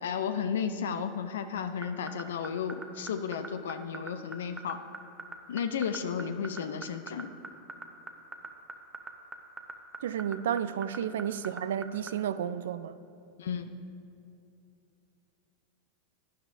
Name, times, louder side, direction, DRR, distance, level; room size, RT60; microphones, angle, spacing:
voice 1, 0.0-4.8 5.5-7.3 13.4-13.7, left 7 dB, 75° left, 0.4 m, -33 dB
sound 1, 1.6-12.1, right 4 dB, 20° right, 0.9 m, -40 dB
voice 2, 10.0-13.0, right 9 dB, 75° right, 0.4 m, -32 dB
12.0 x 9.8 x 2.6 m
hypercardioid pair, 90°, 0 cm